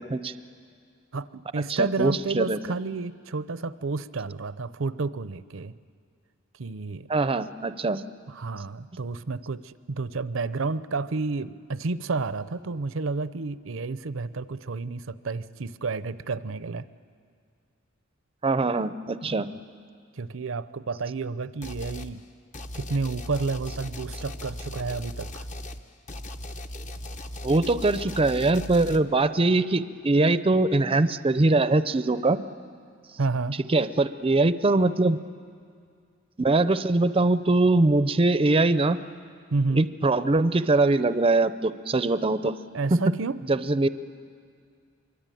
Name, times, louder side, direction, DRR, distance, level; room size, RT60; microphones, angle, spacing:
voice 1, 1.1-5.7 6.6-7.1 8.3-16.9 19.2-19.6 20.1-22.2 22.7-25.5 33.2-33.6 39.5-39.9 42.7-43.4, right 3 dB, 70° right, 15 dB, 0.7 m, -30 dB
voice 2, 1.7-2.6 7.1-8.0 18.4-19.5 27.4-32.4 33.7-35.2 36.4-39.0 39.7-42.5 42.9-43.0 43.5-43.9, right 2 dB, 25° right, 13 dB, 0.6 m, -22 dB
sound 1, 21.6-22.1 22.5-29.0, left 1 dB, 35° left, 1.0 m, -38 dB
24.5 x 23.5 x 9.2 m, 2.2 s
head